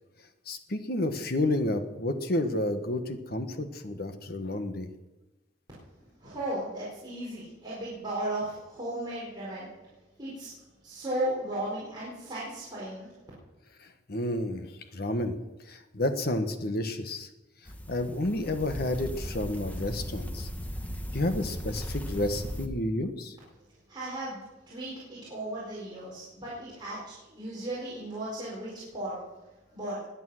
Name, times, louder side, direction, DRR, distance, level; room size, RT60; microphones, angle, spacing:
voice 1, 0.5-4.9 13.8-15.4 15.7-17.3 17.9-20.5 21.1-23.4, left 1 dB, 55° left, 7 dB, 1.4 m, -30 dB
voice 2, 5.9-9.7 10.2-10.5 10.8-13.2 23.9-29.2 29.7-30.0, right 1 dB, 25° right, -8 dB, 4.9 m, -36 dB
sound 1, 17.7-22.7, equal, 10° left, 1.1 m, -37 dB
21.0 x 8.5 x 6.5 m, 1.1 s
head